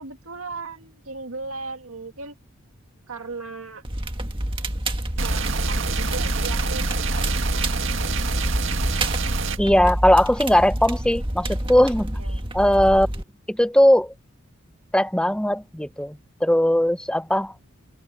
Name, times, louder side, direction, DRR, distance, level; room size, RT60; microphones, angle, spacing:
voice 1, 0.0-2.4 3.1-3.8 5.2-8.2 12.1-12.5, right 3 dB, 85° right, 1.9 m, -37 dB
Crackle, 3.8-13.2, right 1 dB, 25° right, 1.8 m, -28 dB
sound 1, 5.2-9.6, right 3 dB, 65° right, 1.8 m, -26 dB
voice 2, 9.6-12.2 12.5-13.1 13.5-14.1 14.9-17.5, equal, 5° left, 0.7 m, -19 dB
open air
head